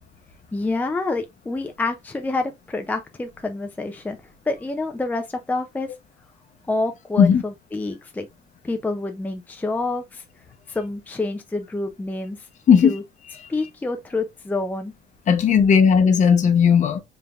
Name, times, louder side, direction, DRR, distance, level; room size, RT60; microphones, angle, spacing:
voice 1, 0.5-4.2 4.5-5.9 6.7-8.3 8.6-10.2 10.7-12.5 12.8-13.0 13.5-14.9, left 3 dB, 10° left, 0.5 m, -27 dB
voice 2, 15.3-17.0, left 7 dB, 45° left, 0.9 m, -16 dB
4.9 x 3.5 x 2.4 m
cardioid pair, 110°, 17 cm